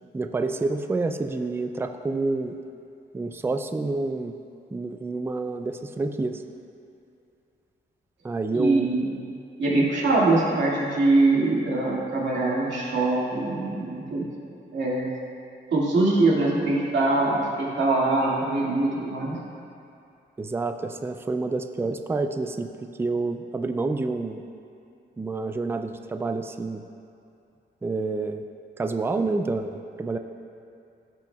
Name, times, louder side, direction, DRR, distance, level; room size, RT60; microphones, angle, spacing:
voice 1, 0.1-2.6 3.1-4.4 4.7-6.4 8.2-8.9 20.4-24.4 25.2-26.8 27.8-28.4 28.8-30.2, right 3 dB, 15° right, 7 dB, 0.3 m, -28 dB
voice 2, 8.5-9.1 9.6-14.2 14.7-15.1 15.7-19.4, right 2 dB, 80° right, -6 dB, 2.1 m, -23 dB
17.5 x 5.9 x 2.3 m, 2.6 s
wide cardioid pair, 115°, 18 cm